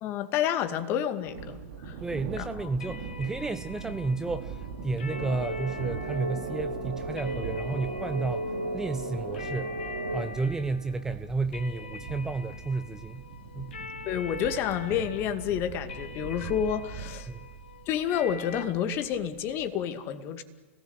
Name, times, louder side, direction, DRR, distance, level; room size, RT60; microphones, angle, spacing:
voice 1, 0.0-1.6 1.9-2.0 2.4-2.7 14.1-17.3 17.9-20.4, left 9 dB, 35° left, 9 dB, 2.2 m, -29 dB
Thunder, 1.2-19.6, right 5 dB, 55° right, 4.7 m, -42 dB
voice 2, 2.0-8.4 8.7-9.7 10.1-13.2 13.5-13.7 17.3-17.5, right 3 dB, 10° right, 11 dB, 0.8 m, -32 dB
sound 1, 2.8-18.6, left 6 dB, 65° left, 2.8 m, -45 dB
sound 2, 5.1-10.3, right 2 dB, 70° right, 4.9 m, -35 dB
30.0 x 18.5 x 8.1 m, 1.3 s
figure-of-eight pair, 105°, 7 cm